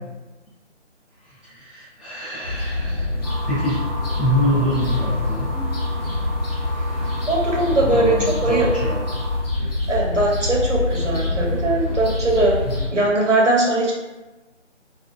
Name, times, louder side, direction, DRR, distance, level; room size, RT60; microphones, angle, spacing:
voice 1, 1.2-3.1 3.5-3.9 4.1-5.5 7.8-9.0 12.6-12.8, equal, 5° left, -25 dB, 0.8 m, -25 dB
sound 1, 2.4-12.9, left 2 dB, 55° left, 0.8 m, -25 dB
sound 2, 3.2-9.4, equal, 30° right, 0.6 m, -35 dB
voice 2, 7.3-8.1 8.4-8.7 9.9-12.6 12.9-13.9, right 2 dB, 80° right, -3 dB, 1.0 m, -20 dB
2.8 x 2.4 x 2.4 m, 1.1 s
figure-of-eight pair, 155°, 36 cm